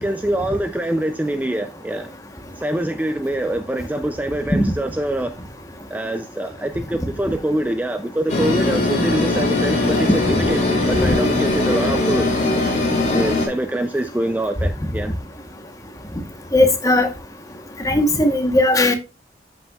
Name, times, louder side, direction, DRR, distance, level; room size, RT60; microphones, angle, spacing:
voice 1, 0.0-2.1 2.6-5.3 5.9-10.6 10.9-12.3 13.1-15.1, right 1 dB, 10° right, 0.3 m, -24 dB
sound 1, 8.3-13.5, left 2 dB, 40° left, 2.8 m, -20 dB
voice 2, 16.5-17.1 17.8-19.0, left 1 dB, 20° left, 1.0 m, -16 dB
12.5 x 5.4 x 2.3 m
head